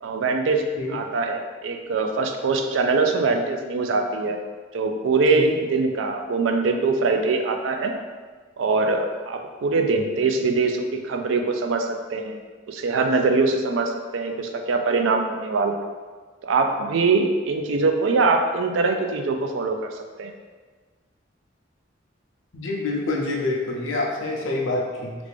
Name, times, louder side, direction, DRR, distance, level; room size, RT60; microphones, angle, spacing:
voice 1, 0.0-0.6 0.9-4.4 4.7-7.9 8.6-12.4 12.7-15.8 16.4-19.9 20.2-20.3, right 3 dB, 75° right, 4 dB, 0.4 m, -23 dB
voice 2, 22.5-25.2, left 2 dB, 80° left, -1 dB, 0.6 m, -26 dB
3.3 x 2.4 x 3.3 m, 1.5 s
head